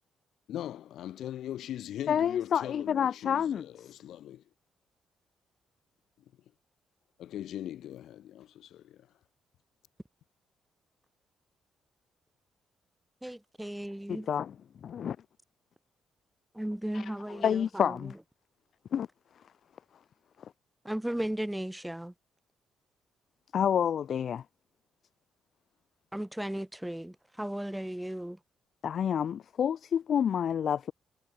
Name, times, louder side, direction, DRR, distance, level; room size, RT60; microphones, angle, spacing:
voice 1, 0.5-4.4 7.2-9.1, left 12 dB, 75° left, 1.2 m, -40 dB
voice 2, 2.1-3.6 14.1-14.6 14.8-15.2 16.9-18.1 18.9-19.1 23.5-24.4 28.8-30.9, left 8 dB, 60° left, 0.5 m, -29 dB
voice 3, 13.2-14.3 16.6-17.9 20.9-22.1 26.1-28.4, right 1 dB, 5° right, 0.3 m, -35 dB
cardioid pair, 90°, 0 cm